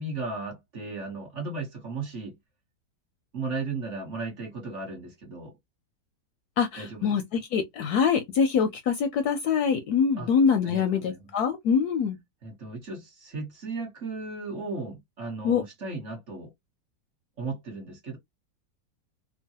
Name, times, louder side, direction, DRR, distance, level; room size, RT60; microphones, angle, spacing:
voice 1, 0.0-2.4 3.3-5.5 6.8-7.1 10.1-10.3 10.6-11.2 12.4-16.5 17.4-18.2, right 3 dB, 45° right, 1.2 m, -35 dB
voice 2, 6.6-12.2 15.4-15.6, left 6 dB, 70° left, 0.9 m, -24 dB
3.0 x 2.2 x 2.7 m
omnidirectional pair, 2.0 m